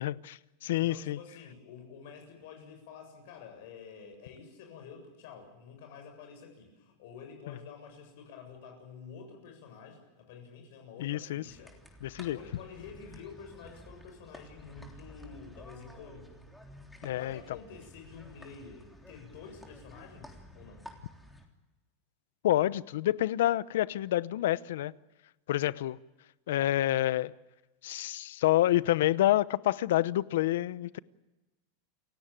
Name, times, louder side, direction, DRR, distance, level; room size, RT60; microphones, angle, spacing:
voice 1, 0.0-1.2 11.0-11.4 12.0-12.4 17.0-17.4 22.4-24.9 25.5-26.0 26.5-27.3 27.8-31.0, left 14 dB, 80° left, 0.8 m, -28 dB
voice 2, 0.7-11.7 12.3-16.4 17.1-20.8, left 6 dB, 65° left, 7.5 m, -49 dB
sound 1, 11.4-21.5, left 1 dB, 5° left, 3.3 m, -52 dB
29.0 x 16.5 x 9.1 m
supercardioid pair, 150°, 0 cm